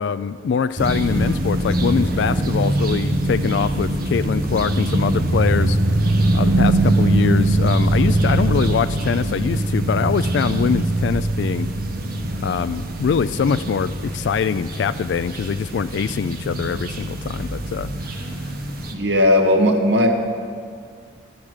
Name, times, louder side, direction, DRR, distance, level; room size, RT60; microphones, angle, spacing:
voice 1, 0.0-5.8 6.3-11.7 12.4-18.5, left 6 dB, 75° left, 13 dB, 0.3 m, -23 dB
sound 1, 0.8-18.9, right 1 dB, 55° right, 1.2 m, -22 dB
voice 2, 18.9-20.1, left 1 dB, 75° right, 2 dB, 1.8 m, -16 dB
13.0 x 12.0 x 6.5 m, 2.1 s
head